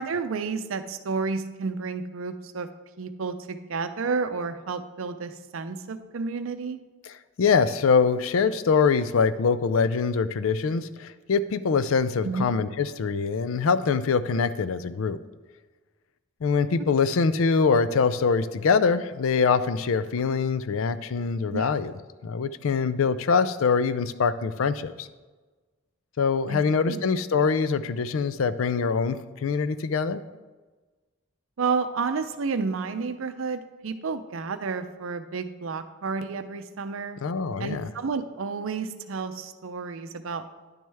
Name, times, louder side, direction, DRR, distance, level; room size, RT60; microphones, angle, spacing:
voice 1, 0.0-2.7 3.0-6.8 12.2-12.5 21.5-21.7 26.5-26.6 26.9-27.0 31.6-37.2 37.6-40.4, right 4 dB, 75° right, 10 dB, 0.5 m, -31 dB
voice 2, 7.4-15.2 16.4-21.9 22.2-25.1 26.2-30.2 37.2-37.9, left 5 dB, 75° left, 14 dB, 0.4 m, -24 dB
10.5 x 6.3 x 3.4 m, 1.3 s
head